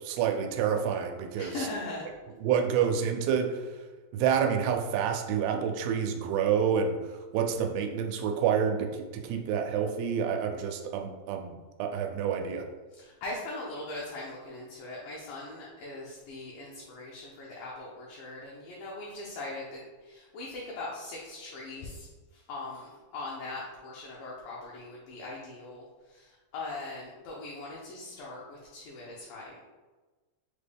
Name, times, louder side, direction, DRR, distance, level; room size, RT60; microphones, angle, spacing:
voice 1, 0.0-1.7 2.4-3.7 4.1-7.0 7.3-12.7, right 7 dB, 90° right, 4 dB, 2.6 m, -28 dB
voice 2, 1.4-2.0 13.0-22.1 22.3-29.6, left 2 dB, 75° left, -4 dB, 2.1 m, -40 dB
6.4 x 2.2 x 3.4 m, 1.3 s
omnidirectional pair, 4.6 m